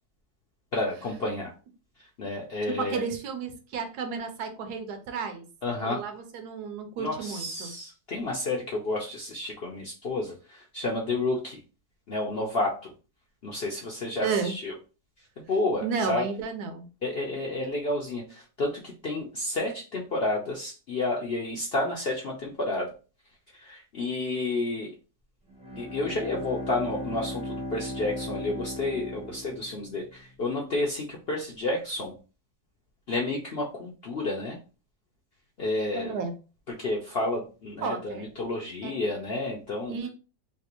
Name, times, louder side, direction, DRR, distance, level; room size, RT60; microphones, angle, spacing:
voice 1, 0.7-1.5 2.0-3.0 5.6-6.0 7.0-11.6 12.1-12.9 13.4-14.7 15.4-16.3 17.0-22.9 23.5-24.9 25.8-32.1 33.1-34.6 35.6-36.2 36.7-40.0, left 2 dB, 65° left, -2 dB, 0.6 m, -30 dB
voice 2, 2.8-5.5 5.8-7.7 14.2-14.5 15.8-16.9 35.9-36.3 37.8-38.3 38.8-38.9 39.9-40.1, right 5 dB, 80° right, 6 dB, 1.2 m, -32 dB
Bowed string instrument, 25.5-30.2, left 1 dB, 10° right, 0.4 m, -37 dB
3.3 x 2.5 x 2.9 m, 0.34 s
omnidirectional pair, 1.7 m